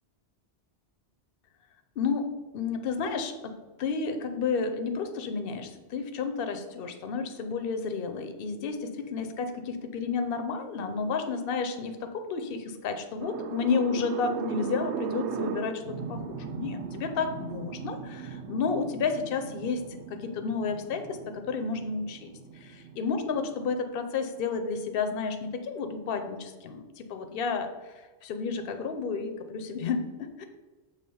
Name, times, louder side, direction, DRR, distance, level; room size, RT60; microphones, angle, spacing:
voice 1, 2.0-2.3 2.5-30.5, left 5 dB, 60° left, 7 dB, 0.8 m, -31 dB
sound 1, 13.2-23.6, right 6 dB, 80° right, 0.9 m, -38 dB
7.1 x 3.3 x 5.4 m, 1.3 s
omnidirectional pair, 1.1 m